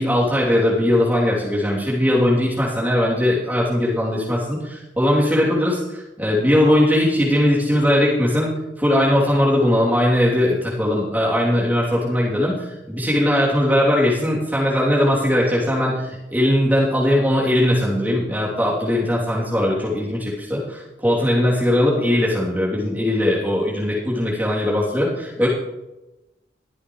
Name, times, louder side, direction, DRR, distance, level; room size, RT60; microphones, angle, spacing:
voice 1, 0.0-8.5 8.8-25.5, left 1 dB, 10° right, -5 dB, 3.0 m, -19 dB
22.0 x 8.5 x 3.2 m, 0.99 s
head